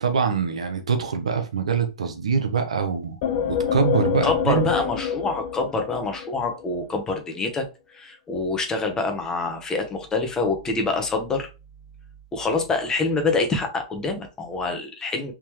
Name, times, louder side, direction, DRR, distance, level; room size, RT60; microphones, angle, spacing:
voice 1, 0.0-3.2 3.4-4.7, right 6 dB, 90° right, 0.8 m, -24 dB
sound 1, 3.2-6.8, left 8 dB, 50° left, 0.6 m, -27 dB
voice 2, 4.2-11.5 12.3-15.3, left 3 dB, 20° left, 0.9 m, -26 dB
3.6 x 2.8 x 3.1 m
hypercardioid pair, 120°, 3 cm